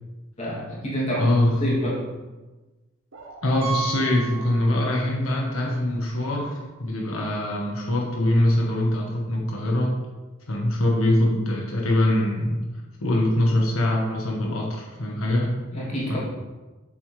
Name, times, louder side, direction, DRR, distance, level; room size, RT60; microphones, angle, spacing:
voice 1, 0.4-1.3 1.6-2.1 15.7-16.2, equal, 30° left, -6 dB, 2.6 m, -28 dB
voice 2, 1.1-1.6 3.4-9.9 10.5-12.6 13.0-15.6 16.1-16.2, left 1 dB, 85° left, -2 dB, 1.3 m, -23 dB
sound 1, 3.1-3.7, right 2 dB, 70° right, 1.0 m, -44 dB
Piano, 3.6-5.2 5.5-5.6 6.2-6.3 6.6-6.7 8.7-8.8, right 6 dB, 30° right, 1.9 m, -34 dB
7.9 x 7.7 x 3.3 m, 1.2 s
head